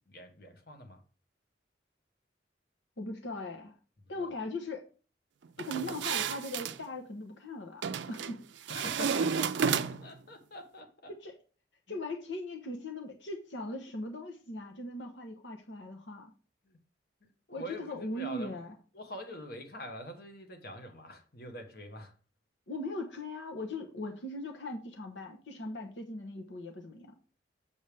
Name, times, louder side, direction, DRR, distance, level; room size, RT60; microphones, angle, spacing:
voice 1, 0.1-1.0 4.1-4.4 8.7-9.7 10.0-11.1 11.9-12.0 16.6-16.8 17.2-18.5 18.9-22.1, equal, 55° left, 1.3 m, -45 dB
voice 2, 3.0-3.7 4.1-4.9 5.6-8.4 11.2-11.3 11.9-16.3 17.5-18.7 22.7-27.1, left 2 dB, 85° left, 1.0 m, -39 dB
sound 1, 5.6-6.8 7.8-8.3 8.7-10.2, right 6 dB, 75° right, 0.4 m, -31 dB
7.1 x 6.6 x 3.4 m
head